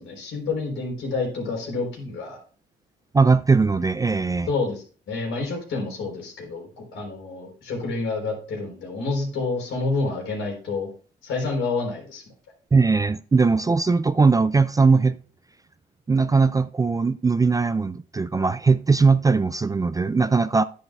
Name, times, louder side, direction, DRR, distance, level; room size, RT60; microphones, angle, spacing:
voice 1, 0.0-2.4 4.5-10.9 11.2-12.2, left 3 dB, 75° left, 3.8 m, -28 dB
voice 2, 3.1-4.5 12.7-15.2 16.1-20.6, right 4 dB, 20° right, 0.3 m, -20 dB
9.6 x 9.3 x 2.3 m
cardioid pair, 90°, 20 cm